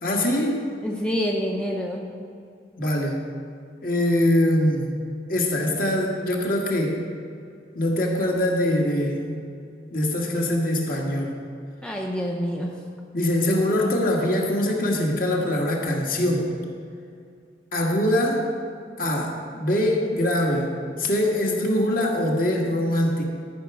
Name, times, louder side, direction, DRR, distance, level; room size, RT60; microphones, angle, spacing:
voice 1, 0.0-0.7 2.8-3.2 3.8-5.0 5.3-7.0 7.7-9.4 9.9-11.4 13.1-16.5 17.7-18.5 19.0-20.7 21.0-23.2, left 1 dB, 50° left, -1 dB, 1.4 m, -23 dB
voice 2, 0.8-2.1 11.8-12.7, equal, 5° left, -1 dB, 0.6 m, -27 dB
13.0 x 6.0 x 4.7 m, 2.4 s
head